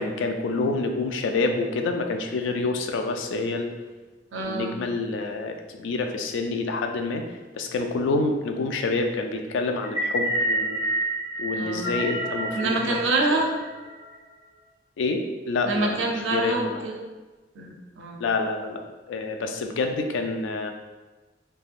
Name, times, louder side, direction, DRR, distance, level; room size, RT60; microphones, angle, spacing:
voice 1, 0.0-3.7 4.4-7.2 7.5-10.8 11.4-13.0 13.4-13.5 15.0-16.8 18.2-18.8 19.1-20.7, left 3 dB, 85° left, 4 dB, 0.3 m, -27 dB
voice 2, 4.3-4.8 11.5-12.0 12.5-13.5 15.6-17.0 17.6-18.3, right 2 dB, 85° right, 1 dB, 0.5 m, -26 dB
sound 1, 9.8-14.1, right 1 dB, 10° right, 0.3 m, -28 dB
3.3 x 2.2 x 2.4 m, 1.2 s
head